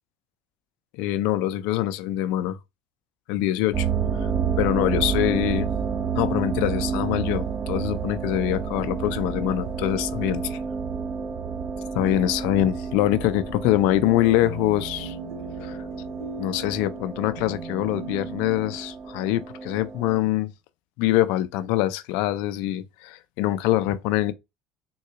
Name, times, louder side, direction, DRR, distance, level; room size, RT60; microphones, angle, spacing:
voice 1, 0.9-2.6 3.3-3.9 4.2-4.3 4.6-5.7 6.2-10.6 11.9-15.2 15.6-15.8 16.4-20.5 21.0-24.3, left 14 dB, 70° left, 0.4 m, -24 dB
sound 1, 3.7-20.2, right 6 dB, 40° right, 0.7 m, -30 dB
sound 2, 14.4-18.7, right 4 dB, 85° right, 0.8 m, -40 dB
3.7 x 2.3 x 2.8 m
hypercardioid pair, 85°, 2 cm